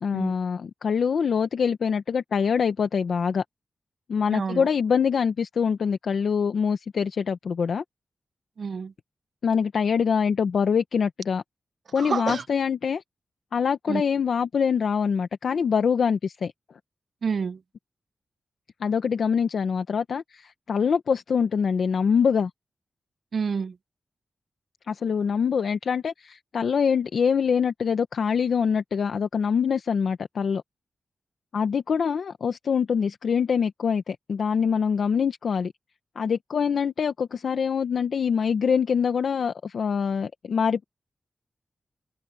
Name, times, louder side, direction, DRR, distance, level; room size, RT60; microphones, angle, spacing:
voice 1, 0.0-3.4 4.1-7.8 9.4-11.4 11.9-13.0 13.5-16.5 18.8-22.5 24.9-30.6 31.5-35.7 36.2-40.8, left 6 dB, 80° left, 1.0 m, -24 dB
voice 2, 4.3-4.7 8.6-8.9 12.0-12.4 13.9-14.0 17.2-17.6 23.3-23.7, right 5 dB, 65° right, 0.6 m, -28 dB
wide cardioid pair, 85°, 0 cm